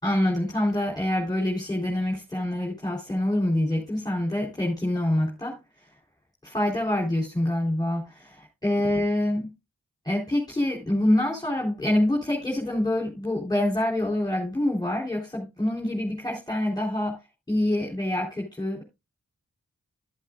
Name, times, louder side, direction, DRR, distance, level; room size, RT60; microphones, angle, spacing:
voice 1, 0.0-5.6 6.4-8.4 8.6-9.5 10.0-17.2 17.5-18.8, left 1 dB, 15° left, -2 dB, 3.6 m, -26 dB
12.0 x 11.0 x 2.5 m, 0.25 s
wide cardioid pair, 85°, 31 cm